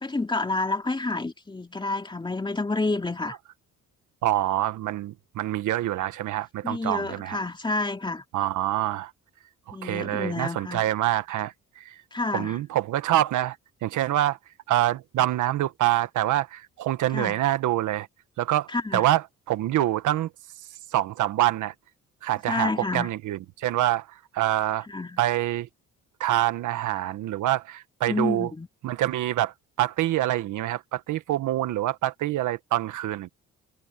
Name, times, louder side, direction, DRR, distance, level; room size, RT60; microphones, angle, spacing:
voice 1, 0.0-3.4 6.6-8.2 9.7-10.9 12.1-12.6 17.1-17.4 18.7-19.1 22.5-23.1 24.9-25.2 28.1-28.7, left 3 dB, 15° left, 2.6 m, -29 dB
voice 2, 4.2-7.4 8.3-9.1 9.7-11.9 12.3-13.6 13.8-14.4 14.7-18.1 18.4-19.2 19.5-20.3 20.9-21.7 22.2-24.1 24.3-24.9 25.2-25.7 26.2-28.5 28.8-33.3, right 14 dB, 80° right, 1.4 m, -26 dB
cardioid pair, 90°, 30 cm